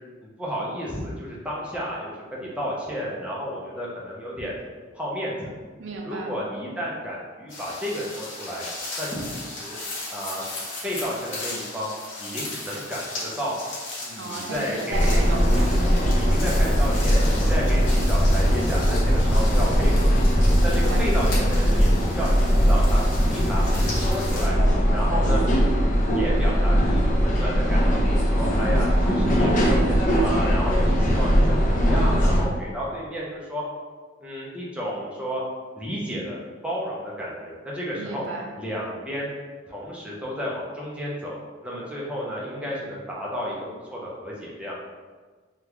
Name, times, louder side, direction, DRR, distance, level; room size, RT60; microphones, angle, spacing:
voice 1, 0.4-4.6 4.9-5.5 6.0-8.7 9.0-9.8 10.1-10.4 10.8-11.9 12.2-13.5 14.0-15.3 16.1-20.2 20.6-23.6 23.9-24.6 24.9-25.4 26.1-33.6 34.2-35.4 35.8-36.4 36.6-38.2 38.6-39.3 39.7-44.8, equal, 5° right, -5 dB, 0.6 m, -32 dB
voice 2, 5.8-6.4 14.1-15.9 20.6-21.4 37.9-38.5, right 3 dB, 70° right, 1 dB, 0.4 m, -34 dB
sound 1, 7.5-24.5, left 2 dB, 80° left, 0.9 m, -37 dB
sound 2, 14.9-32.4, equal, 40° left, 0.5 m, -20 dB
3.5 x 2.3 x 3.0 m, 1.4 s
head